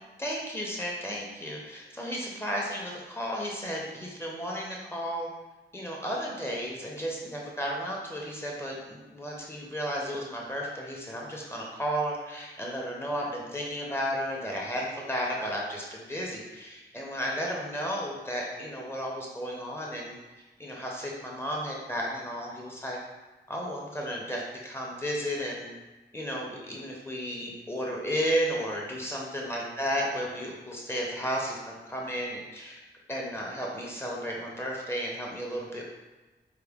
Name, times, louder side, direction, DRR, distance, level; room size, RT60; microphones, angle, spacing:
voice 1, 0.2-5.3 5.7-20.2 20.6-23.0 23.5-25.7 26.1-32.8 33.1-35.8, equal, 15° left, -3 dB, 0.7 m, -33 dB
4.6 x 2.2 x 3.4 m, 1.2 s
wide cardioid pair, 135°, 19 cm